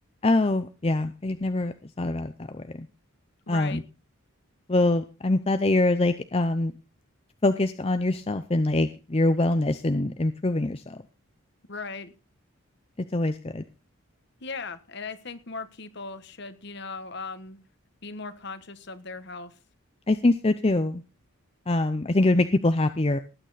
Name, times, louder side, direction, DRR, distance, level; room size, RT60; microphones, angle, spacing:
voice 1, 0.2-2.9 3.5-3.8 4.7-6.7 7.4-11.0 13.1-13.6 20.1-21.0 21.7-23.2, left 2 dB, 25° left, 9 dB, 0.6 m, -24 dB
voice 2, 3.5-3.8 11.7-12.1 14.4-17.6 18.0-19.5, left 4 dB, 50° left, 12 dB, 1.3 m, -38 dB
19.0 x 8.8 x 4.1 m, 0.32 s
head